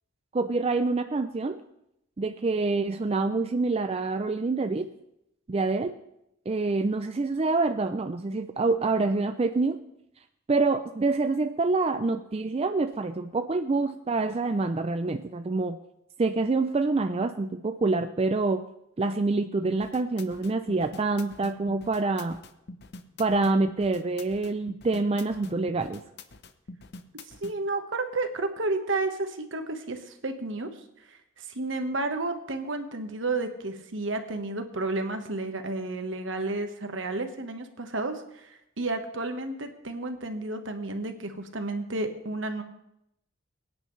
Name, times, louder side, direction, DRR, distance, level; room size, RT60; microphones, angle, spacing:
voice 1, 0.3-1.6 2.2-4.9 5.5-6.0 6.5-9.8 10.5-15.8 16.2-18.7 19.0-22.4 23.2-26.0, right 3 dB, 30° right, 8 dB, 0.4 m, -26 dB
sound 1, 19.7-27.5, left 3 dB, 55° left, 0.8 m, -45 dB
voice 2, 27.4-30.7 31.1-42.6, right 2 dB, 65° right, 6 dB, 1.4 m, -31 dB
23.0 x 9.5 x 3.3 m, 0.80 s
head